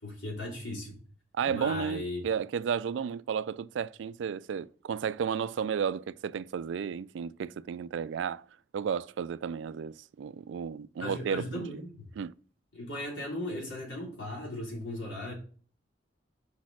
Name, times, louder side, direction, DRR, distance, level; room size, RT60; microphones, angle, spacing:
voice 1, 0.0-1.0 1.4-2.2 11.0-11.9 12.7-15.3, left 1 dB, 90° left, 3.0 m, -37 dB
voice 2, 1.3-8.5 8.7-11.8 12.2-12.3, right 7 dB, 75° right, 0.3 m, -33 dB
5.5 x 4.2 x 5.9 m
head